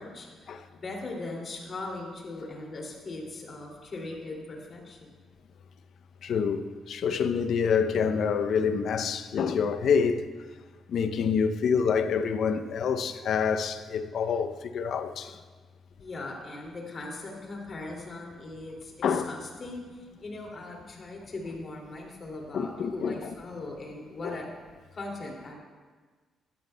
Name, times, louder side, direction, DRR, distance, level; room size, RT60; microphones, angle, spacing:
voice 1, 0.0-5.2 16.0-24.5 24.9-25.5, left 2 dB, 40° left, 2.4 m, -39 dB
voice 2, 6.2-6.6 6.9-10.2 10.9-15.3 19.0-19.3 22.5-23.3 24.2-24.3, left 6 dB, 65° left, 0.5 m, -27 dB
12.5 x 12.5 x 2.2 m
cardioid pair, 90°, 0 cm